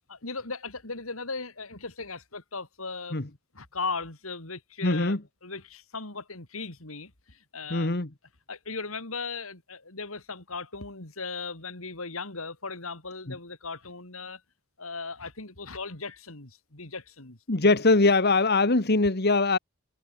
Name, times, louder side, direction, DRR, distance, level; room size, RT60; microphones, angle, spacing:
voice 1, 0.1-3.2 3.5-5.2 5.4-7.9 8.5-14.4 14.8-17.4, left 4 dB, 75° left, 3.9 m, -37 dB
voice 2, 4.8-5.2 7.7-8.1 13.3-13.4 17.5-19.6, left 3 dB, 50° left, 1.7 m, -22 dB
head